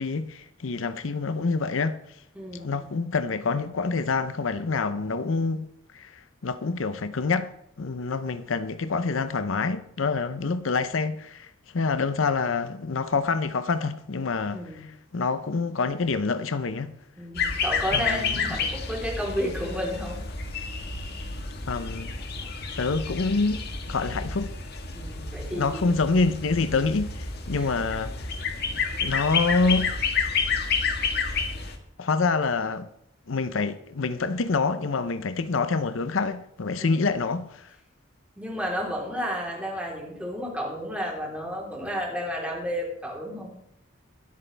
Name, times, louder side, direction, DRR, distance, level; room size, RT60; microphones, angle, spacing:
voice 1, 0.0-2.2 2.5-5.7 5.9-7.5 7.8-17.0 17.9-18.6 21.6-22.2 22.8-23.6 23.9-24.5 25.5-28.3 29.0-29.9 32.0-32.9 33.3-37.8, left 4 dB, 80° left, 0.7 m, -27 dB
voice 2, 2.3-2.8 14.5-14.8 17.2-20.2 24.9-26.0 27.6-27.8 36.8-37.1 38.4-43.5, equal, 5° right, 3.7 m, -32 dB
sound 1, 17.3-31.8, left 5 dB, 55° left, 1.6 m, -30 dB
23.0 x 8.4 x 3.4 m
head